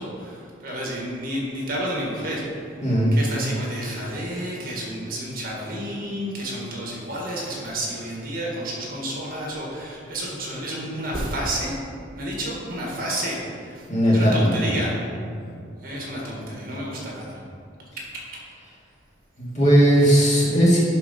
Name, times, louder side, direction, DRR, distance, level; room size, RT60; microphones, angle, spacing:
voice 1, 0.0-2.4 3.1-11.7 12.2-13.9 14.1-14.9 15.8-17.4, right 1 dB, 50° right, -3 dB, 1.7 m, -30 dB
voice 2, 2.8-3.1 13.9-14.8 19.4-20.8, equal, 35° left, -6 dB, 2.1 m, -18 dB
11.0 x 3.8 x 5.3 m, 2.4 s
head